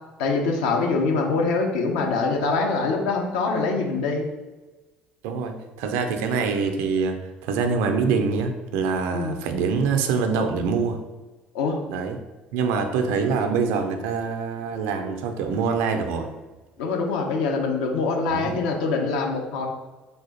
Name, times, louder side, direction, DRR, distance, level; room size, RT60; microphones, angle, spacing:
voice 1, 0.2-4.2 9.1-9.4 11.5-11.8 16.8-19.7, left 4 dB, 65° left, 1 dB, 0.7 m, -24 dB
voice 2, 5.2-11.0 11.9-12.2 12.5-16.3 18.3-18.6, right 5 dB, 60° right, 6 dB, 0.4 m, -25 dB
3.4 x 2.4 x 4.0 m, 1.2 s
figure-of-eight pair, 55°, 5 cm